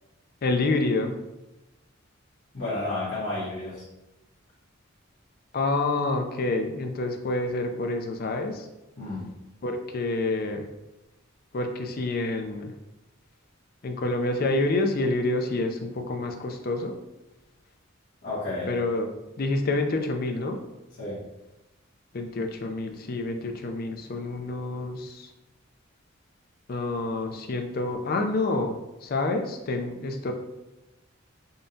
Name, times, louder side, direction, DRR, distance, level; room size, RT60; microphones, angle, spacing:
voice 1, 0.4-1.1 5.5-8.7 9.6-10.7 11.5-12.7 13.8-17.0 18.7-19.1 19.4-20.6 22.1-25.3 26.7-30.3, left 2 dB, 45° left, 5 dB, 0.4 m, -28 dB
voice 2, 2.5-3.8 9.0-9.3 18.2-18.7 21.0-21.2, left 2 dB, 60° left, -11 dB, 1.2 m, -31 dB
5.3 x 2.2 x 2.7 m, 0.99 s
head